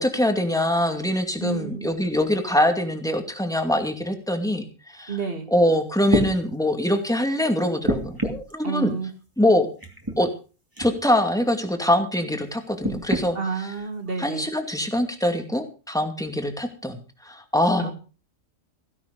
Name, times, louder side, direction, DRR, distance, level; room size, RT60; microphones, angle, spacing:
voice 1, 0.0-5.2 5.5-9.0 9.4-9.7 10.2-10.3 10.8-13.7 14.2-17.9, left 1 dB, 5° left, 5 dB, 2.4 m, -23 dB
voice 2, 1.4-1.9 5.1-5.5 8.6-9.1 13.4-14.5 17.8-17.9, right 4 dB, 45° right, 7 dB, 2.3 m, -30 dB
sound 1, 5.5-5.6 6.1-6.3 7.8-8.5 9.8-10.2 10.8-10.9 12.8-13.3 14.2-14.3, right 1 dB, 15° right, 2.9 m, -26 dB
16.0 x 11.0 x 5.2 m, 0.36 s
omnidirectional pair, 1.3 m